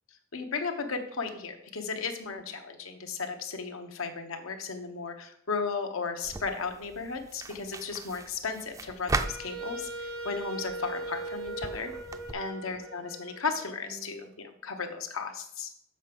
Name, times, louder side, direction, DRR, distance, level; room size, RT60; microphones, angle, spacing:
voice 1, 0.3-11.9 12.3-15.7, left 5 dB, 85° left, 5 dB, 1.0 m, -35 dB
sound 1, 6.2-12.3, right 3 dB, 15° right, 0.4 m, -38 dB
Wind instrument woodwind instrument, 9.2-14.1, right 2 dB, 90° right, 1.5 m, -40 dB
6.7 x 6.4 x 5.3 m, 0.71 s
head